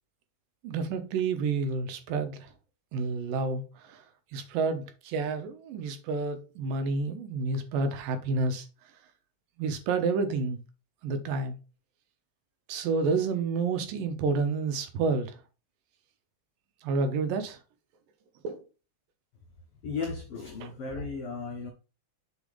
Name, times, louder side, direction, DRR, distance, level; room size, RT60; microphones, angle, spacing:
voice 1, 0.6-2.5 2.9-4.0 4.3-8.7 9.6-10.6 11.0-11.6 12.7-15.3 16.8-17.6 18.4-18.6 20.6-20.7, right 4 dB, 80° right, 2.7 m, -29 dB
voice 2, 19.8-21.7, left 4 dB, 75° left, 1.3 m, -35 dB
6.8 x 4.1 x 5.1 m
omnidirectional pair, 4.0 m